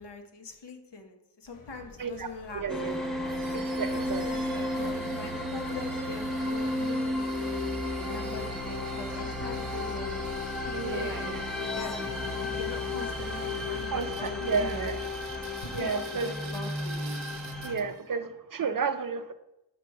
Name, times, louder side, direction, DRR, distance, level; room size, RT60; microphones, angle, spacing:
voice 1, 0.0-2.7 3.9-10.2 10.6-11.3 11.6-11.9 12.4-14.9 15.6-16.9, left 4 dB, 55° left, 5 dB, 1.0 m, -42 dB
sound 1, 1.5-15.5, equal, 90° left, 1.2 m, -51 dB
voice 2, 2.0-4.2 4.8-4.9 10.7-11.5 13.9-15.1 15.7-16.3 17.6-19.3, right 5 dB, 45° right, 10 dB, 0.4 m, -33 dB
sound 2, 2.7-17.7, left 1 dB, ahead, 0.7 m, -33 dB
sound 3, 3.2-18.1, right 6 dB, 75° right, 0.8 m, -49 dB
5.8 x 4.7 x 4.7 m, 0.88 s
wide cardioid pair, 85°, 49 cm